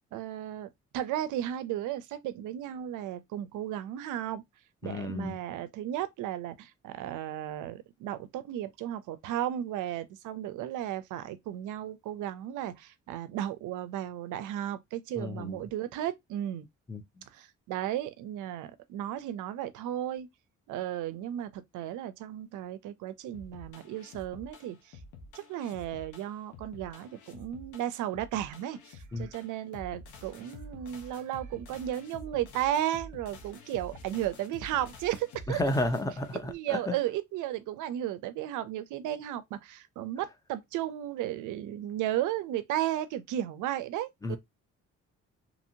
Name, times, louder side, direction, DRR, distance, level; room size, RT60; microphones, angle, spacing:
voice 1, 0.1-0.7 0.9-4.4 4.8-16.7 17.3-20.3 20.7-25.0 25.3-35.6 36.3-44.4, right 12 dB, 85° right, 0.5 m, -34 dB
voice 2, 4.8-5.4 15.2-15.6 16.9-17.0 29.1-29.3 35.5-36.9 44.2-44.4, left 1 dB, 10° left, 0.5 m, -32 dB
sound 1, 23.3-36.5, left 1 dB, 75° left, 0.9 m, -48 dB
2.9 x 2.7 x 2.6 m
cardioid pair, 90°, 30 cm